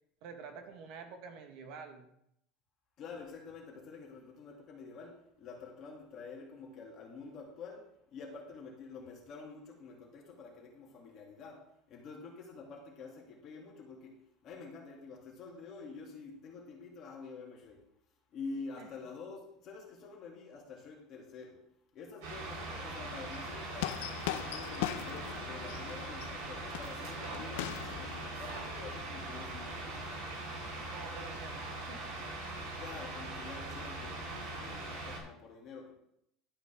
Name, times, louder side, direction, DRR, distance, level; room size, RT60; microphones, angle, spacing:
voice 1, 0.2-2.1 18.8-18.9 30.9-32.2, right 5 dB, 50° right, 1.4 m, -48 dB
voice 2, 3.0-17.9 18.3-21.6 21.9-30.2 32.8-35.9, left 4 dB, 35° left, 2.5 m, -48 dB
sound 1, 22.2-35.2, right 2 dB, 80° right, 4.4 m, -41 dB
sound 2, 23.3-28.3, left 13 dB, 85° left, 0.5 m, -40 dB
12.0 x 8.8 x 3.5 m
cardioid pair, 175°, 0 cm